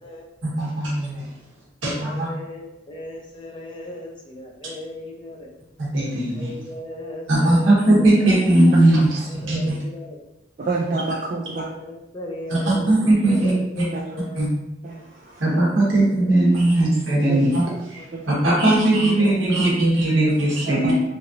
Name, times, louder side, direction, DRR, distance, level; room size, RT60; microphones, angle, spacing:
voice 1, 0.4-1.3 1.8-2.3 5.8-6.5 7.3-9.8 12.6-13.8 14.4-14.5 15.4-20.9, right 1 dB, 85° right, -5 dB, 1.2 m, -19 dB
voice 2, 1.9-5.5 6.3-8.7 9.2-10.2 11.1-14.5 15.4-15.9 16.2-16.4 16.7-16.8 17.9-18.8 19.2-19.5 20.2-20.3, left 1 dB, 25° left, -2 dB, 0.5 m, -38 dB
voice 3, 10.6-11.7 13.9-14.0 14.8-15.4 17.3-17.4 18.1-18.2 20.7-21.0, right 3 dB, 45° right, -5 dB, 0.4 m, -27 dB
3.2 x 2.5 x 2.8 m, 0.89 s
head